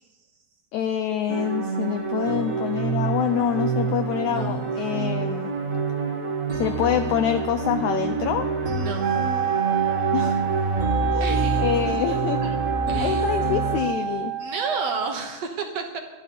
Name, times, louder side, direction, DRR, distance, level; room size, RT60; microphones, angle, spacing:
voice 1, 0.7-5.5 6.5-8.5 10.1-10.4 11.1-12.4 13.0-14.3, left 9 dB, 90° left, 9 dB, 1.6 m, -26 dB
sound 1, 1.3-13.8, right 4 dB, 45° right, 1.0 m, -27 dB
voice 2, 4.2-4.7 8.8-9.2 11.2-11.7 12.1-12.6 12.9-13.2 14.4-16.0, right 5 dB, 60° right, 3 dB, 1.8 m, -32 dB
Wind instrument woodwind instrument, 9.0-15.2, right 9 dB, 90° right, 2.7 m, -28 dB
22.0 x 12.0 x 4.3 m, 1.2 s
omnidirectional pair, 4.1 m